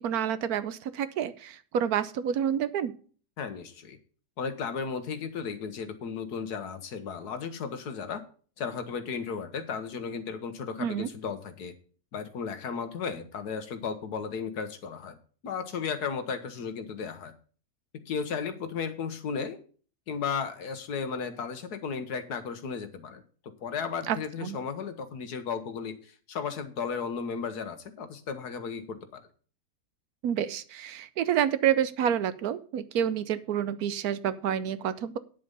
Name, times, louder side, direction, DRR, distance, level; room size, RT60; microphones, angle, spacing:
voice 1, 0.0-2.9 10.8-11.1 24.1-24.6 30.2-35.2, right 9 dB, 75° right, 14 dB, 1.1 m, -28 dB
voice 2, 3.4-4.0 4.4-8.2 8.6-11.7 12.1-15.2 15.4-17.3 18.1-19.6 20.1-29.3, left 6 dB, 75° left, 9 dB, 1.7 m, -35 dB
9.5 x 7.3 x 5.3 m, 0.42 s
omnidirectional pair, 1.7 m